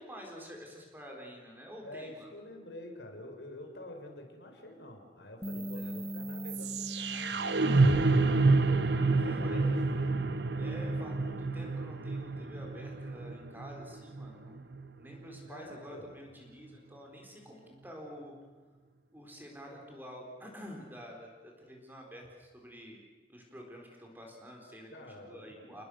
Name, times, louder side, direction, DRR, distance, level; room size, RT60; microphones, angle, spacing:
voice 1, 0.0-2.3 5.5-6.0 8.9-9.6 10.6-18.3 19.1-23.0 23.3-24.9 25.2-25.8, equal, 10° right, 0 dB, 4.4 m, -48 dB
voice 2, 1.8-8.5 9.1-10.3 15.4-16.1 24.9-25.8, left 1 dB, 85° left, 3 dB, 4.5 m, -48 dB
Bass guitar, 5.4-11.7, equal, 15° left, 1.3 m, -43 dB
sound 1, 5.4-15.5, right 3 dB, 80° right, 1.2 m, -29 dB
30.0 x 19.5 x 6.5 m, 1.4 s
head